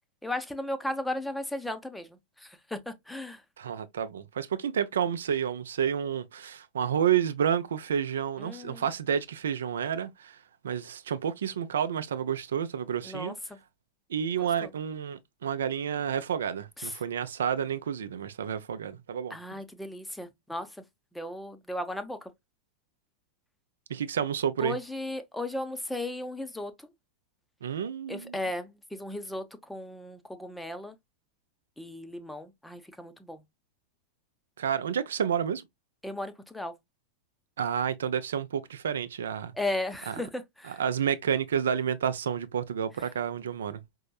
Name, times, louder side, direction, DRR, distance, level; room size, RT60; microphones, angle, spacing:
voice 1, 0.2-3.4 8.4-8.8 13.0-13.6 14.4-14.7 16.8-17.0 19.3-20.8 21.1-22.3 24.6-26.9 28.1-31.0 31.8-33.4 36.0-36.7 39.5-40.8, left 1 dB, 5° left, 0.7 m, -36 dB
voice 2, 3.6-10.4 10.6-13.4 14.1-19.4 23.9-24.8 27.6-28.4 34.6-35.7 37.6-39.5 40.1-40.2 40.8-43.8, right 8 dB, 65° right, 0.6 m, -30 dB
5.2 x 2.8 x 2.3 m
figure-of-eight pair, 90°, 0 cm